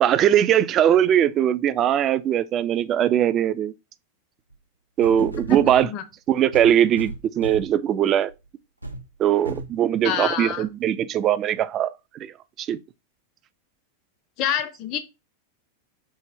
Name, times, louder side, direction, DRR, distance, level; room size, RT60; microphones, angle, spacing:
voice 1, 0.0-3.7 5.0-5.9 6.3-8.3 9.2-12.3 12.6-12.8, right 10 dB, 30° right, 0.3 m, -20 dB
sound 1, 4.5-4.6 5.0-5.9 6.5-7.8 8.3-8.4 8.8-9.0 9.4-9.8 10.5-10.6, right 2 dB, 85° right, 0.5 m, -35 dB
voice 2, 5.5-6.0 10.0-10.6 14.4-15.0, left 9 dB, 40° left, 0.5 m, -27 dB
5.4 x 2.1 x 3.3 m
figure-of-eight pair, 90°, 0 cm